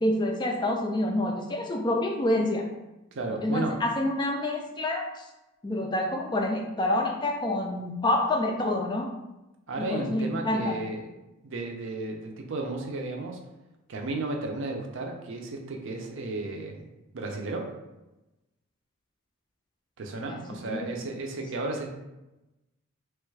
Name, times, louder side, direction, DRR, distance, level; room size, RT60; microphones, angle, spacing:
voice 1, 0.0-2.7 3.4-5.3 5.6-9.1 9.9-10.8 20.3-20.9, left 1 dB, 20° left, 2 dB, 0.3 m, -27 dB
voice 2, 3.1-3.7 9.7-11.0 11.4-13.4 13.9-16.9 17.1-17.7 20.0-21.9, right 2 dB, 60° right, 1 dB, 0.5 m, -33 dB
3.2 x 2.3 x 3.2 m, 0.98 s
head